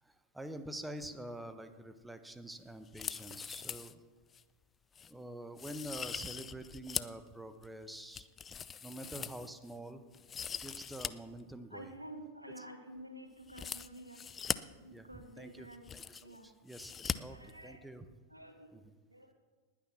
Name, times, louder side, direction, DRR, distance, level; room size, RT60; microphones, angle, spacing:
voice 1, 0.0-4.0 5.1-8.3 8.8-10.0 10.6-11.9 12.6-12.7 14.9-18.1 18.7-18.8, right 1 dB, 5° right, 10 dB, 1.1 m, -47 dB
sound 1, 2.9-3.9 4.3-4.4 5.0-5.1 5.6-7.2 7.6-9.8 10.1-11.1 11.4-11.5 13.5-14.6 15.4-15.5 15.7-16.4 16.7-17.2 17.4-17.5, left 7 dB, 20° left, 0.5 m, -41 dB
voice 2, 11.7-14.2 14.8-16.5 17.1-17.8 18.3-18.7 19.1-19.3, right 1 dB, 85° right, 5 dB, 1.9 m, -50 dB
20.0 x 9.4 x 5.9 m, 1.4 s
figure-of-eight pair, 90°, 0 cm